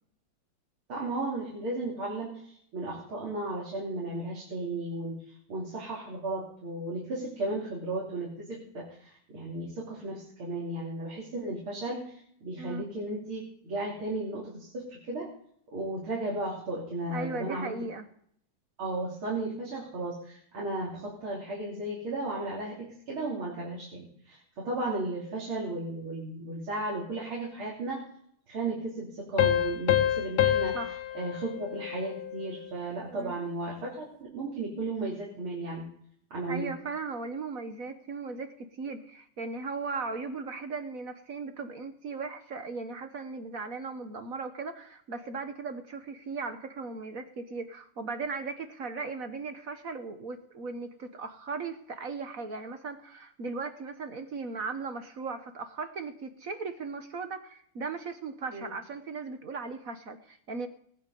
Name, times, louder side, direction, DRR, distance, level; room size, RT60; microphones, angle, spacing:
voice 1, 0.9-15.3 15.7-17.7 18.8-28.1 28.5-30.8 31.1-35.9 36.3-36.7 58.5-58.6, right 2 dB, 75° right, -5 dB, 3.9 m, -35 dB
voice 2, 17.1-18.1 30.7-30.9 33.1-33.3 36.5-60.7, right 4 dB, 50° right, 8 dB, 1.1 m, -37 dB
sound 1, 29.4-32.7, left 11 dB, 55° left, 1.1 m, -27 dB
18.5 x 9.4 x 5.3 m, 0.65 s
omnidirectional pair, 2.3 m